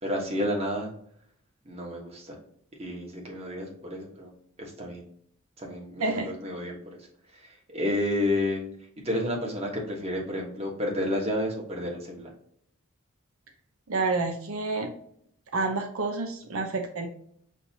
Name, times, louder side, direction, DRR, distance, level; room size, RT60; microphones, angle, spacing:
voice 1, 0.0-0.9 1.6-2.4 2.8-4.3 4.6-5.0 5.6-6.8 7.3-8.6 9.0-12.3, left 1 dB, 30° right, -1 dB, 1.2 m, -30 dB
voice 2, 6.0-6.3 13.9-14.9 15.5-17.1, right 3 dB, 80° right, 4 dB, 0.7 m, -29 dB
6.3 x 2.6 x 2.8 m, 0.65 s
head